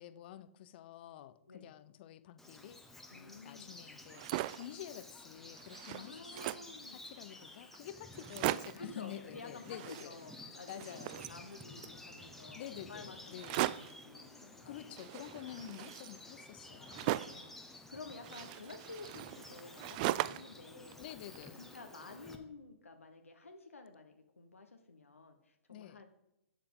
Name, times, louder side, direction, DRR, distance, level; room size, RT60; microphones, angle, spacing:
voice 1, 0.0-4.2 4.5-6.1 6.4-10.2 10.7-11.2 12.5-13.7 14.6-17.3 21.0-21.6 25.7-26.0, left 12 dB, 50° left, 14 dB, 0.7 m, -49 dB
Bird vocalization bird call bird song, 2.4-22.3, left 2 dB, 5° left, 1.2 m, -53 dB
voice 2, 3.1-3.7 5.8-7.0 8.8-15.0 16.9-21.0 21.5-26.1, left 3 dB, 85° left, 4 dB, 1.0 m, -52 dB
sound 1, 4.0-4.7 5.2-5.3 5.5-6.8 7.4-7.5 7.7-7.8 8.1-8.9 9.6-10.4 10.7-12.0 13.4-14.0 15.0-17.5 18.2-20.6 20.9-21.8, right 16 dB, 40° right, 0.3 m, -39 dB
12.0 x 8.6 x 3.8 m, 0.85 s
figure-of-eight pair, 115°, 7 cm